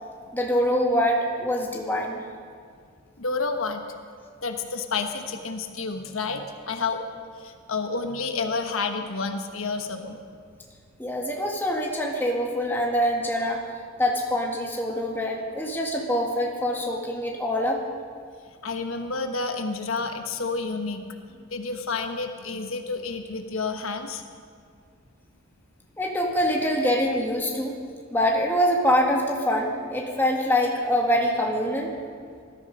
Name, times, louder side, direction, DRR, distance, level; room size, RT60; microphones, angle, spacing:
voice 1, 0.3-2.2 11.0-17.8 26.0-27.8 28.1-31.9, equal, 10° left, -1 dB, 1.8 m, -24 dB
voice 2, 3.2-3.8 4.4-7.0 7.4-10.2 18.6-21.1 21.5-24.2, left 4 dB, 85° left, 6 dB, 1.2 m, -30 dB
19.5 x 13.0 x 5.3 m, 2.1 s
head